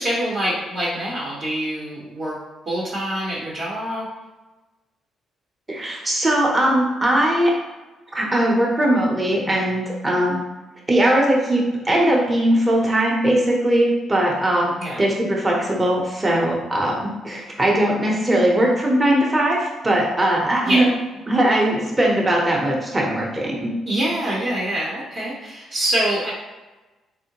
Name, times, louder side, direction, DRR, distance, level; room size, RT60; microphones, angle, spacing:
voice 1, 0.0-2.4 2.7-4.1 14.8-15.0 20.6-20.9 23.9-26.3, right 1 dB, 50° right, -5 dB, 0.8 m, -25 dB
voice 2, 5.7-7.5 8.1-10.4 10.9-14.7 15.0-20.9 21.3-23.7, right 1 dB, 20° right, -2 dB, 0.8 m, -20 dB
3.6 x 2.1 x 2.8 m, 1.2 s
cardioid pair, 90°, 0 cm